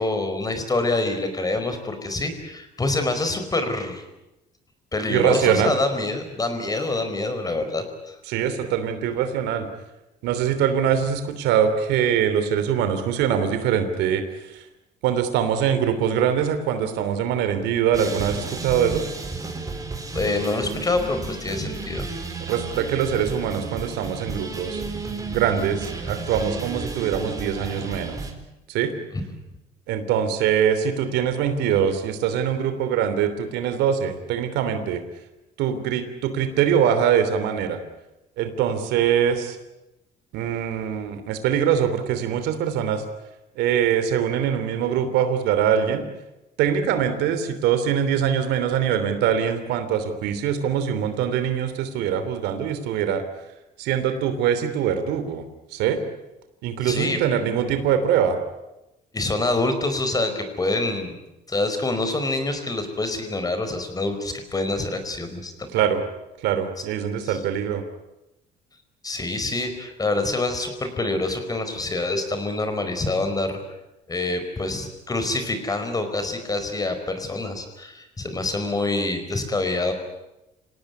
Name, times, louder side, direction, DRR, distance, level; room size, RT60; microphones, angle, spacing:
voice 1, 0.0-4.0 4.9-8.1 20.1-22.1 29.1-29.2 56.8-57.2 59.1-61.2 61.5-65.8 67.2-67.4 69.0-73.6 74.1-79.9, left 2 dB, 20° left, 8 dB, 4.8 m, -26 dB
voice 2, 5.1-5.7 8.3-9.7 10.2-14.6 15.0-19.0 22.5-24.8 25.3-28.2 28.7-28.9 29.9-35.0 35.6-37.8 38.4-39.6 40.3-43.0 43.6-46.1 46.6-53.2 53.8-55.4 55.7-56.0 56.6-58.4 65.7-66.0 66.4-67.8, right 8 dB, 90° right, 9 dB, 3.1 m, -23 dB
sound 1, 17.9-28.3, right 4 dB, 20° right, 4.3 m, -33 dB
26.5 x 18.0 x 9.7 m, 0.95 s
cardioid pair, 110°, 17 cm